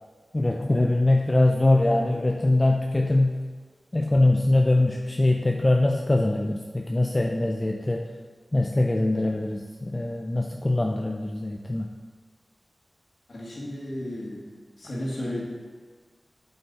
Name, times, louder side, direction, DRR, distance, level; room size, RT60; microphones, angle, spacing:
voice 1, 0.3-3.4 3.9-8.1 8.5-11.9, left 2 dB, 25° left, 1 dB, 0.5 m, -23 dB
voice 2, 13.3-14.5 14.8-15.4, left 1 dB, 65° left, -4 dB, 2.0 m, -33 dB
8.4 x 5.8 x 4.1 m, 1.5 s
wide cardioid pair, 70°, 0 cm